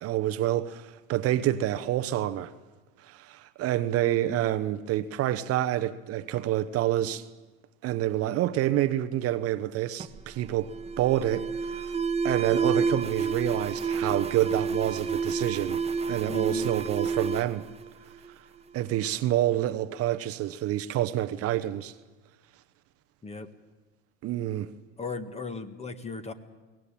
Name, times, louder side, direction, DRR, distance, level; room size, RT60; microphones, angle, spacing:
voice 1, 0.0-2.5 3.0-7.2 7.8-11.9 12.2-17.7 18.7-21.9 24.2-24.7, right 13 dB, 45° right, 1.0 m, -28 dB
Alarm, 10.0-18.6, right 5 dB, 20° right, 1.1 m, -30 dB
voice 2, 16.3-16.7 23.2-23.5 25.0-26.3, left 4 dB, 20° left, 1.7 m, -36 dB
23.0 x 18.5 x 8.7 m
hypercardioid pair, 90°, 34 cm